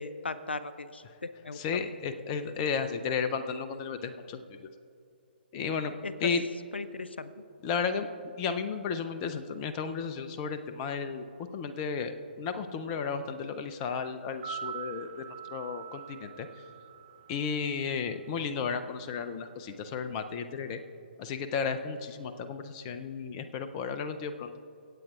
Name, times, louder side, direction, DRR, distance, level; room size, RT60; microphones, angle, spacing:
voice 1, 0.0-1.6 6.0-6.1 6.7-7.3, left 3 dB, 75° left, 13 dB, 0.5 m, -38 dB
voice 2, 1.6-4.4 5.5-5.9 6.2-6.4 7.6-8.1 8.4-11.2 11.5-12.1 12.4-16.5 17.3-20.8 21.2-24.5, left 6 dB, 25° left, 9 dB, 0.5 m, -33 dB
sound 1, 14.3-18.4 18.7-18.8, right 8 dB, 40° right, 1.9 m, -44 dB
24.5 x 8.6 x 2.4 m, 2.5 s
figure-of-eight pair, 130°, 6 cm